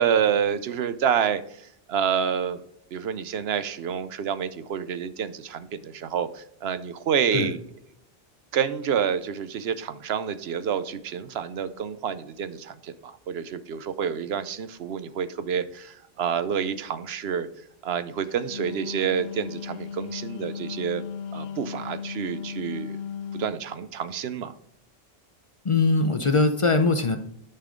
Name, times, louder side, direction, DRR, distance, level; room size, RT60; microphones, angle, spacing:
voice 1, 0.0-1.4 1.9-2.6 2.9-7.6 8.5-17.5 17.8-21.0 21.3-23.0 23.3-24.5, right 8 dB, 80° right, 13 dB, 0.9 m, -28 dB
Wind instrument woodwind instrument, 18.3-23.6, left 6 dB, 75° left, 0.8 m, -36 dB
voice 2, 25.6-27.2, left 3 dB, 35° left, 7 dB, 0.6 m, -21 dB
10.5 x 5.6 x 3.7 m, 0.73 s
omnidirectional pair, 1.1 m